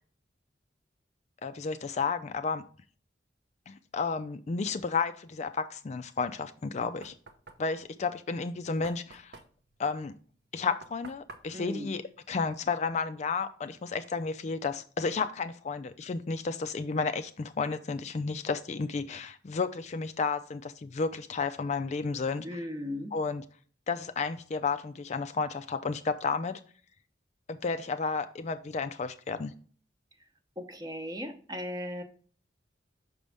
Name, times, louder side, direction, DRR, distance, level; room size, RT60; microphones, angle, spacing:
voice 1, 1.4-2.6 3.7-7.1 7.6-9.4 9.8-10.1 10.5-12.0 12.3-22.6 23.1-23.4 23.9-26.6 27.5-29.5, left 4 dB, 40° left, 0.4 m, -32 dB
Knock, 6.5-12.9, right 3 dB, 65° right, 0.7 m, -53 dB
voice 2, 11.5-11.9 22.4-23.2 30.6-32.0, left 1 dB, 20° right, 0.8 m, -37 dB
6.1 x 5.3 x 3.4 m
head